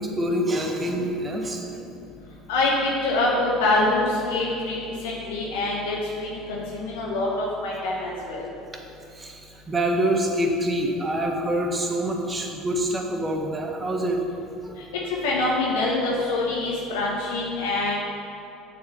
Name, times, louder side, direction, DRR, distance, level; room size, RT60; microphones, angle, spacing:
voice 1, 0.0-1.6 9.1-14.2 14.6-14.8, right 1 dB, 25° right, 2 dB, 1.1 m, -26 dB
voice 2, 2.5-4.8 5.0-8.5 15.2-17.9, left 2 dB, 80° left, -4 dB, 1.0 m, -25 dB
6.8 x 4.3 x 6.6 m, 2.7 s
hypercardioid pair, 75°, 0 cm